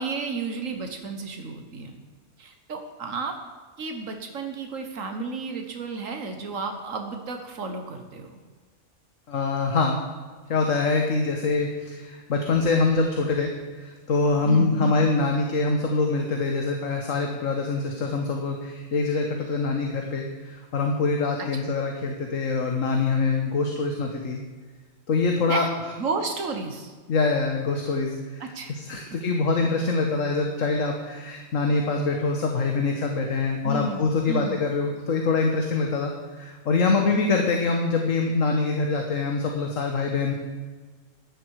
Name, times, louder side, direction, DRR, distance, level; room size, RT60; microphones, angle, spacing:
voice 1, 0.0-1.9 2.4-3.4 3.8-8.4 14.4-15.1 21.4-21.8 25.5-25.7 26.0-26.9 28.4-28.7 29.1-29.2 33.6-34.6 37.8-38.0, right 3 dB, 90° right, 5 dB, 1.7 m, -32 dB
voice 2, 9.3-10.0 10.5-13.5 13.8-24.4 25.1-25.7 27.1-36.1 36.4-40.3, left 3 dB, 85° left, 2 dB, 1.8 m, -24 dB
15.5 x 12.0 x 4.8 m, 1.5 s
omnidirectional pair, 1.3 m